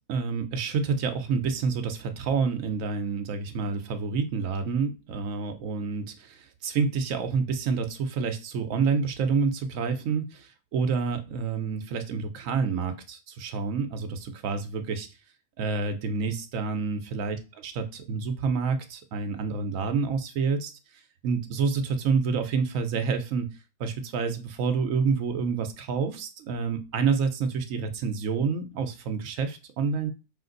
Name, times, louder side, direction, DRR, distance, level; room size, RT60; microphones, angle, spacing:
voice 1, 0.1-15.1 15.6-17.4 17.6-20.7 21.2-23.5 23.8-30.1, right 5 dB, 85° right, 7 dB, 1.2 m, -28 dB
5.5 x 2.6 x 3.8 m, 0.30 s
omnidirectional pair, 1.3 m